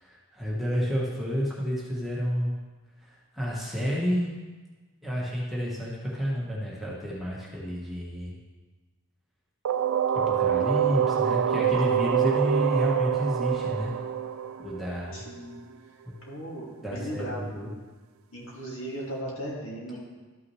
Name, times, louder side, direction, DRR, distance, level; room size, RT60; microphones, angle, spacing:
voice 1, 0.0-2.5 3.0-4.3 5.0-8.3 10.3-13.9 14.6-15.2 16.0-16.2 16.8-17.7, equal, ahead, -6 dB, 1.3 m, -30 dB
sound 1, 9.6-15.4, right 9 dB, 70° right, 0.3 m, -26 dB
voice 2, 15.1-15.6 16.3-17.6 18.3-20.0, equal, 65° left, -4 dB, 2.2 m, -36 dB
12.5 x 6.0 x 3.2 m, 1.3 s
head